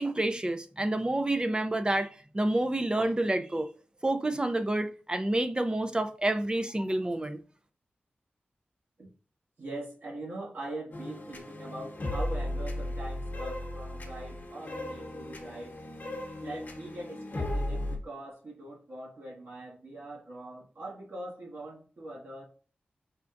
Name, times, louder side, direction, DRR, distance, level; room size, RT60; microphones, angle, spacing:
voice 1, 0.0-3.7 4.0-7.4, right 1 dB, 25° right, 0.4 m, -29 dB
voice 2, 9.6-15.7 16.4-22.5, right 2 dB, 65° right, 1.4 m, -42 dB
sound 1, 10.9-18.0, left 1 dB, 55° left, 0.9 m, -36 dB
4.9 x 2.2 x 2.5 m
cardioid pair, 55°, 4 cm